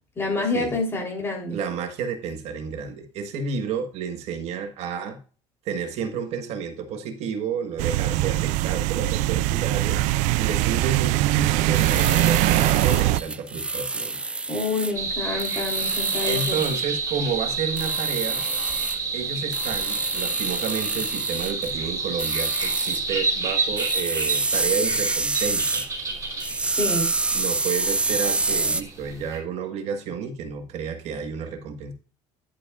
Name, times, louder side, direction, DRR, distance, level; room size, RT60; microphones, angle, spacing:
voice 1, 0.2-1.6 14.5-16.6 26.6-27.1, left 3 dB, 20° left, 0 dB, 3.6 m, -27 dB
voice 2, 1.5-5.2 5.6-10.0 10.4-14.2 16.2-18.4 19.1-25.8 27.3-31.9, right 6 dB, 60° right, 6 dB, 1.6 m, -31 dB
sound 1, 7.8-13.2, right 16 dB, 80° right, 0.4 m, -22 dB
sound 2, 11.7-14.9 15.4-16.8 17.8-19.0 19.5-21.7 22.2-23.0 23.8-25.9 26.4-28.8, right 3 dB, 10° right, 0.3 m, -27 dB
sound 3, 14.9-29.4, right 4 dB, 25° right, 3.2 m, -30 dB
10.5 x 8.2 x 2.5 m, 0.37 s
cardioid pair, 150°, 12 cm